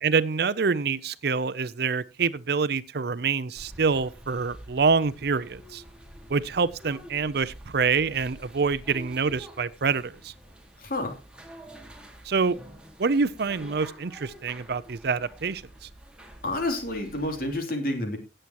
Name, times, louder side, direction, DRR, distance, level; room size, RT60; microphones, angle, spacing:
voice 1, 0.0-5.8 6.3-10.3 12.2-12.6 13.0-15.9, right 5 dB, 65° right, 0.6 m, -26 dB
sound 1, 3.5-17.6, equal, 5° right, 1.9 m, -48 dB
voice 2, 10.8-11.2 16.4-18.2, left 1 dB, 55° left, 3.1 m, -29 dB
18.0 x 7.7 x 3.0 m
head